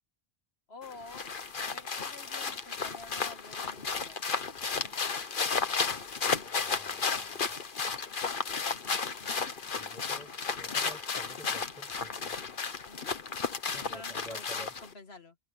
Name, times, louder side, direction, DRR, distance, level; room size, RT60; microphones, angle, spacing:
voice 1, 0.7-4.3 9.1-9.5 12.9-13.1 13.9-15.4, left 3 dB, 75° left, 2.4 m, -49 dB
sound 1, 0.8-14.9, left 5 dB, 55° left, 1.4 m, -33 dB
voice 2, 6.5-7.7 9.8-10.3 10.6-12.3 13.7-14.7, equal, 5° left, 7.7 m, -50 dB
omnidirectional pair, 1.1 m